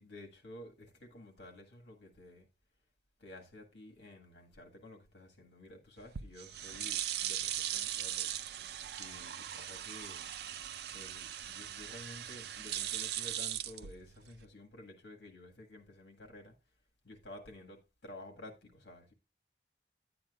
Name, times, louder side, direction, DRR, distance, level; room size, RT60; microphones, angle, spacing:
voice 1, 0.0-2.5 3.2-8.3 9.0-10.3 10.9-16.5 17.0-19.1, left 1 dB, 75° left, 1.7 m, -52 dB
sound 1, 6.0-14.4, right 11 dB, 65° right, 0.5 m, -39 dB
10.5 x 8.8 x 2.4 m
head